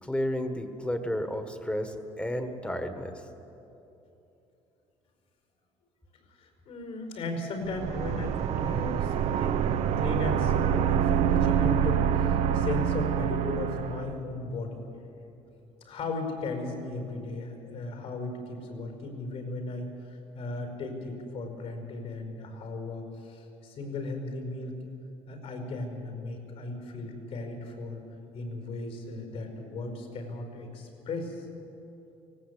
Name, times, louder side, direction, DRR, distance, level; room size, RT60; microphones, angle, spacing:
voice 1, 0.0-3.2, equal, 10° left, 7 dB, 1.5 m, -32 dB
voice 2, 6.4-9.7 10.0-14.8 15.8-24.8 25.3-28.0 28.3-31.4, left 2 dB, 65° left, 4 dB, 5.1 m, -36 dB
sound 1, 7.6-14.1, right 9 dB, 70° right, 0.8 m, -26 dB
18.5 x 16.5 x 8.4 m, 2.9 s
cardioid pair, 115°, 12 cm